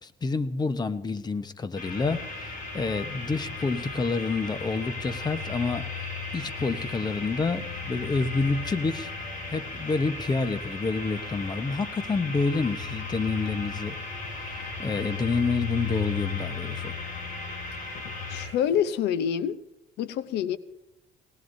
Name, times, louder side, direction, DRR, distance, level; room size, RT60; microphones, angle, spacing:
voice 1, 0.0-5.9 6.3-9.1 9.5-14.0 14.4-17.0, left 4 dB, 25° left, 1.0 m, -28 dB
sound 1, 1.7-18.5, left 4 dB, 55° left, 7.1 m, -35 dB
voice 2, 18.3-19.6 20.0-20.6, left 9 dB, 80° left, 0.8 m, -26 dB
19.5 x 19.0 x 2.7 m
cardioid pair, 110°, 17 cm